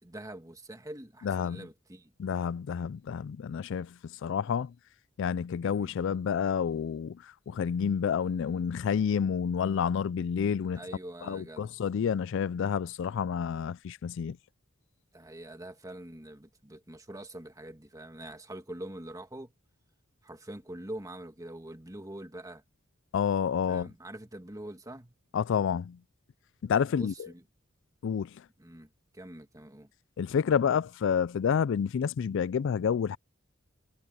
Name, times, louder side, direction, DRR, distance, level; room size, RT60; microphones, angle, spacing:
voice 1, 0.0-2.1 5.6-5.9 10.8-11.7 15.1-19.5 20.2-22.6 23.7-25.2 26.9-27.4 28.6-29.9, right 1 dB, 15° right, 1.8 m, -44 dB
voice 2, 1.2-1.6 2.2-3.9 4.2-4.7 5.2-7.2 7.5-10.8 11.3-14.4 23.1-23.9 25.3-26.0 26.6-27.3 28.0-28.3 30.2-33.2, left 7 dB, 65° left, 0.3 m, -29 dB
head